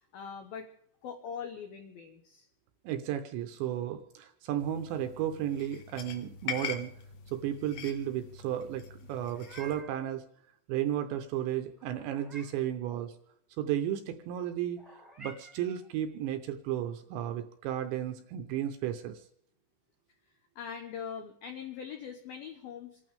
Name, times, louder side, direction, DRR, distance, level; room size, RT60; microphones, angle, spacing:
voice 1, 0.1-0.7 1.0-2.5 20.6-23.0, left 7 dB, 90° left, 5 dB, 2.1 m, -42 dB
voice 2, 2.8-6.9 7.3-10.2 10.7-13.1 13.6-14.8 15.2-19.2, right 11 dB, 80° right, 8 dB, 2.8 m, -33 dB
sound 1, 4.6-9.8, left 8 dB, 65° left, 2.4 m, -43 dB
Meow, 9.1-10.1 11.8-12.7 14.8-15.9, right 3 dB, ahead, 0.6 m, -51 dB
27.5 x 12.0 x 3.5 m, 0.70 s
omnidirectional pair, 5.8 m